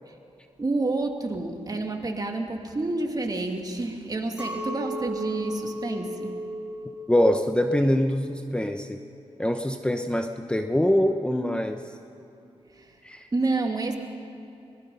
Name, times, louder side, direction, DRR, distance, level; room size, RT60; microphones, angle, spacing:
voice 1, 0.6-6.4 12.7-13.0 13.3-14.0, right 2 dB, 35° right, 3 dB, 2.6 m, -29 dB
Chink clink, 4.4-9.8, equal, 10° right, 3.6 m, -36 dB
voice 2, 7.1-9.0 9.4-11.8 13.0-13.3, equal, 10° left, 6 dB, 0.9 m, -24 dB
23.5 x 20.5 x 5.5 m, 2.7 s
cardioid pair, 75°, 11 cm